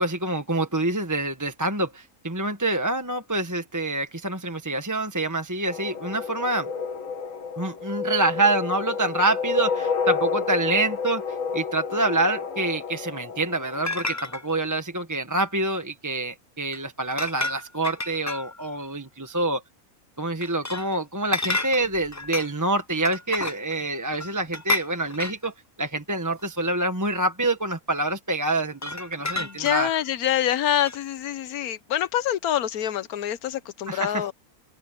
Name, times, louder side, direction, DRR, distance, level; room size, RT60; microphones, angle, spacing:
voice 1, 0.0-6.7 7.6-11.2 11.5-19.6 20.2-25.5 25.8-29.9 33.9-34.2, right 2 dB, 15° right, 1.2 m, -26 dB
sound 1, 5.7-14.3, left 5 dB, 60° left, 2.0 m, -30 dB
sound 2, 13.8-14.4 16.7-16.8 17.1-18.7 20.4-20.9 21.3-22.6 23.0-23.8 24.1-25.5 26.4-26.5 28.7-30.0 30.9-31.0, left 2 dB, 20° left, 0.4 m, -31 dB
voice 2, 29.4-34.3, left 11 dB, 75° left, 1.3 m, -26 dB
open air
omnidirectional pair, 1.6 m